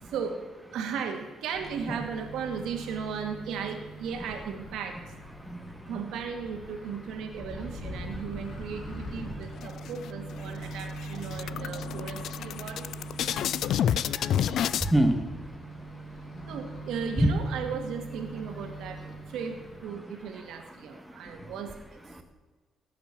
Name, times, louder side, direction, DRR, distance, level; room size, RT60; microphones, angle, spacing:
voice 1, 0.0-5.1 5.9-12.9 16.5-19.0 19.3-22.2, right 6 dB, 85° right, 2.2 m, -36 dB
Microwave oven, 1.5-19.8, right 1 dB, 50° left, 2.5 m, -42 dB
voice 2, 5.4-6.0 13.3-16.5 17.2-17.3 20.9-21.5 22.1-22.2, right 1 dB, 5° right, 1.7 m, -30 dB
sound 1, 9.6-10.3 10.7-10.8 11.1-14.9, left 9 dB, 75° left, 0.5 m, -29 dB
18.0 x 7.4 x 6.1 m
cardioid pair, 90°, 0 cm